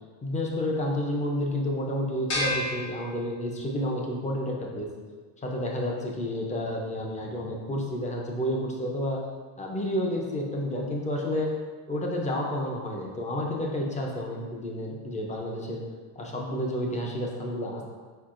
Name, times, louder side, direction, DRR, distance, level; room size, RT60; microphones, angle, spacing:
voice 1, 0.2-4.9 5.4-9.2 9.6-11.5 11.9-15.8 16.2-17.8, left 1 dB, 15° left, -1 dB, 0.5 m, -30 dB
sound 1, 2.3-3.8, left 1 dB, 55° left, 1.3 m, -31 dB
4.8 x 4.4 x 2.5 m, 1.5 s
cardioid pair, 155°, 47 cm